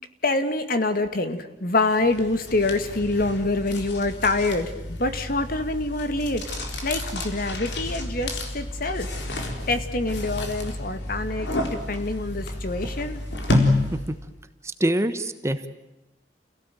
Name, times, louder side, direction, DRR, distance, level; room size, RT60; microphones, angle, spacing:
voice 1, 0.2-4.7 5.0-6.4 6.8-11.5 11.9-13.2, left 2 dB, 55° left, 9 dB, 2.1 m, -26 dB
sound 1, 1.9-14.3, left 2 dB, 90° left, 4.1 m, -30 dB
voice 2, 13.8-14.1 14.8-15.7, right 1 dB, 15° right, 10 dB, 1.2 m, -25 dB
29.5 x 17.5 x 9.3 m, 0.99 s
head